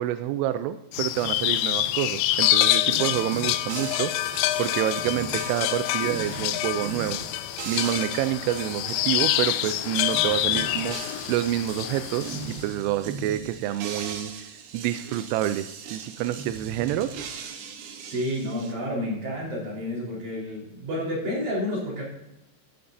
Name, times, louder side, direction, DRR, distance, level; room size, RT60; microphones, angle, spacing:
voice 1, 0.0-7.2 7.7-17.1, right 13 dB, 90° right, 11 dB, 3.1 m, -28 dB
sound 1, 0.9-12.6, left 14 dB, 85° left, 2.6 m, -26 dB
drunk drums.R, 2.9-18.7, right 5 dB, 70° right, 3.0 m, -39 dB
voice 2, 18.0-22.0, left 1 dB, 40° right, -4 dB, 5.4 m, -30 dB
13.0 x 12.5 x 2.7 m, 0.87 s
omnidirectional pair, 5.6 m